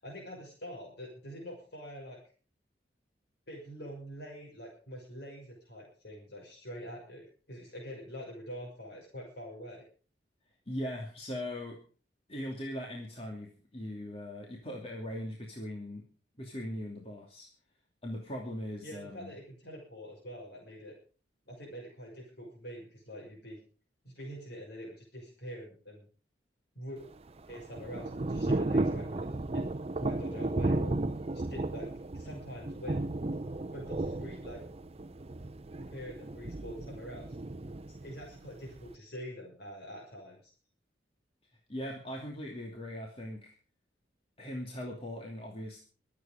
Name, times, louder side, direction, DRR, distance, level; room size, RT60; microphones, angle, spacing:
voice 1, 0.0-2.2 3.5-9.8 18.8-20.9 21.5-23.6 24.0-26.1 26.7-27.0 27.5-29.3 29.5-30.9 31.5-33.1 33.7-34.6 35.8-37.4 38.0-40.5, equal, 65° left, -2 dB, 6.2 m, -45 dB
voice 2, 10.7-11.8 12.3-16.1 16.4-17.5 18.0-19.3 41.7-43.5 44.4-45.8, left 1 dB, 35° left, -1 dB, 2.9 m, -40 dB
Thunder / Rain, 27.0-38.9, right 2 dB, 35° right, 0.7 m, -34 dB
24.0 x 8.6 x 5.2 m, 0.40 s
head